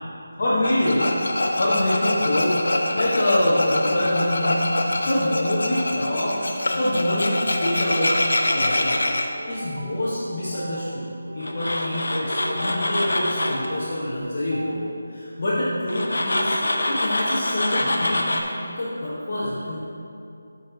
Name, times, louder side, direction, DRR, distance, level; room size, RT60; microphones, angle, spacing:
voice 1, 0.4-9.0 9.5-16.5 16.9-19.8, left 1 dB, 35° left, -9 dB, 1.0 m, -25 dB
Tools, 0.6-9.3 11.4-13.7 15.9-18.4, left 1 dB, 80° left, 0.7 m, -25 dB
sound 1, 8.9-14.7, right 2 dB, 85° right, 0.6 m, -39 dB
6.8 x 5.5 x 3.9 m, 2.7 s
figure-of-eight pair, 175°, 0 cm